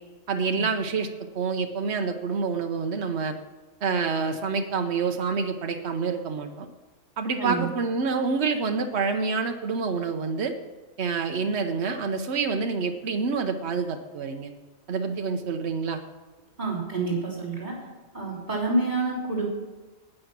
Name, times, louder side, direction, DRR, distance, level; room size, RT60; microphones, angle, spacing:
voice 1, 0.3-1.1 1.3-3.3 3.8-6.7 7.2-10.5 11.0-14.5 14.9-16.0, right 5 dB, 70° right, 4 dB, 1.2 m, -27 dB
voice 2, 16.6-17.8 18.1-19.5, right 3 dB, 40° right, -5 dB, 3.5 m, -28 dB
18.5 x 6.6 x 6.0 m, 1.3 s
omnidirectional pair, 1.2 m